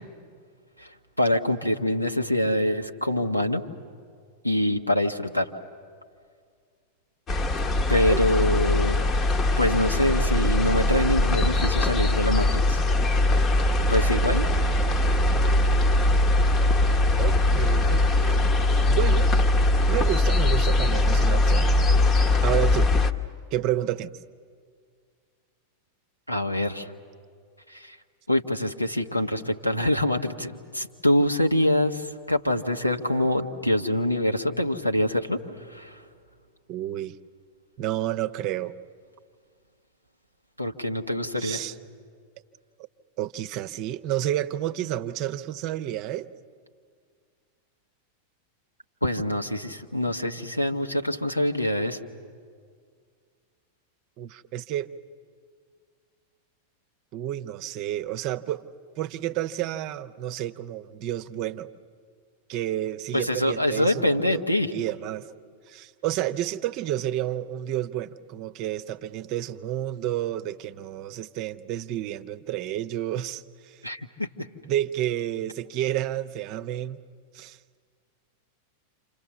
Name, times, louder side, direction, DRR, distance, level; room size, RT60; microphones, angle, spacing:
voice 1, 1.2-3.6 4.4-5.5 7.9-9.0 9.6-12.8 13.9-14.4 26.3-26.9 27.7-28.0 28.3-35.4 35.7-36.0 40.6-41.6 49.0-52.0 63.1-64.7 73.8-74.3, left 1 dB, 90° left, 4 dB, 1.2 m, -25 dB
sound 1, 7.3-23.1, left 2 dB, 25° left, 1.1 m, -21 dB
voice 2, 8.1-8.6 17.2-18.5 18.9-19.3 19.9-21.7 22.4-22.9 23.5-24.1 36.7-37.2 37.8-38.7 41.4-41.7 43.2-46.3 54.2-54.9 57.1-58.7 59.0-61.7 62.5-64.4 64.7-65.3 65.7-73.8 74.6-77.0 77.3-77.6, right 13 dB, 40° right, 11 dB, 0.8 m, -30 dB
29.0 x 27.0 x 7.2 m, 2.1 s
figure-of-eight pair, 90°, 0 cm